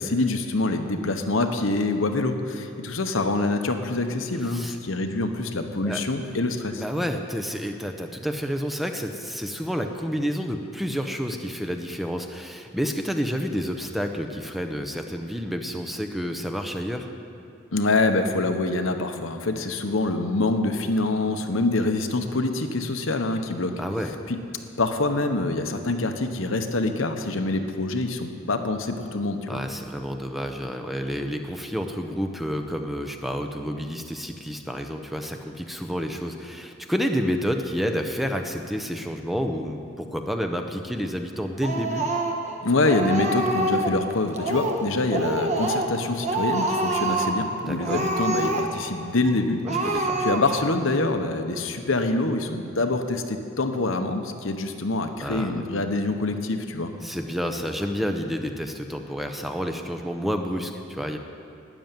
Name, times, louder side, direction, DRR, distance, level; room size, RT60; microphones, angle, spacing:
voice 1, 0.0-6.8 17.7-23.8 24.3-24.4 24.8-29.6 42.6-49.6 50.2-56.9, left 2 dB, 70° left, 6 dB, 1.0 m, -25 dB
voice 2, 6.8-17.1 23.8-24.1 29.5-42.1 47.7-48.1 49.6-50.2 55.2-55.6 57.0-61.2, equal, ahead, 4 dB, 0.7 m, -29 dB
Speech, 41.6-42.5 42.9-44.0 44.3-44.8 45.1-46.0 46.2-47.4 47.8-48.9 49.2-49.4 49.7-50.7, right 2 dB, 35° right, 1.3 m, -26 dB
12.5 x 9.2 x 9.1 m, 2.5 s
head